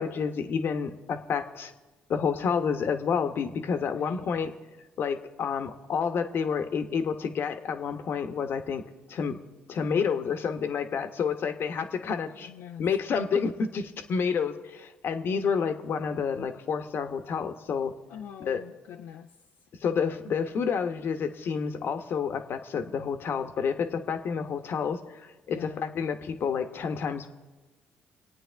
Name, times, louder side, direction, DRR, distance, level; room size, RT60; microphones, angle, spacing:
voice 1, 0.0-1.7 2.1-4.5 5.0-8.8 9.1-9.4 9.7-12.5 12.8-17.9 18.4-18.6 19.8-27.3, left 6 dB, 60° left, 8 dB, 1.1 m, -29 dB
voice 2, 4.0-4.3 12.4-12.9 18.1-19.3 25.5-25.9, left 9 dB, 75° left, 3 dB, 0.6 m, -44 dB
26.5 x 9.1 x 3.4 m, 1.2 s
hypercardioid pair, 55°, 4 cm